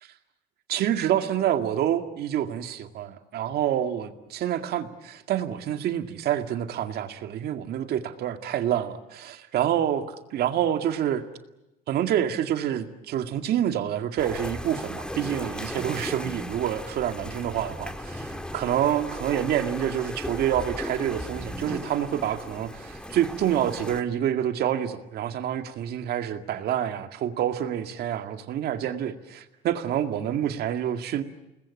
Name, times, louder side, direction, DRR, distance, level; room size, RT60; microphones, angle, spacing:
voice 1, 0.7-10.0 10.3-11.2 11.9-31.2, right 10 dB, 70° right, 7 dB, 2.1 m, -27 dB
sound 1, 14.2-24.0, equal, 5° left, 1.8 m, -36 dB
29.0 x 20.5 x 8.8 m, 0.96 s
cardioid pair, 110°, 17 cm